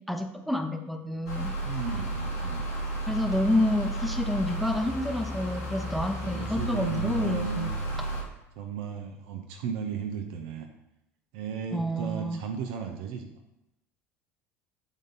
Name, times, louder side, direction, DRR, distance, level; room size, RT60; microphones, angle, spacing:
voice 1, 0.1-1.5 3.1-7.7 11.7-12.4, left 1 dB, ahead, 5 dB, 0.9 m, -29 dB
sound 1, 1.3-8.2, right 1 dB, 90° left, 2.2 m, -33 dB
voice 2, 1.6-2.6 6.2-7.7 8.6-10.7 11.3-13.3, right 6 dB, 65° right, 4 dB, 0.7 m, -35 dB
8.2 x 3.7 x 4.1 m, 0.88 s
hypercardioid pair, 70°, 8 cm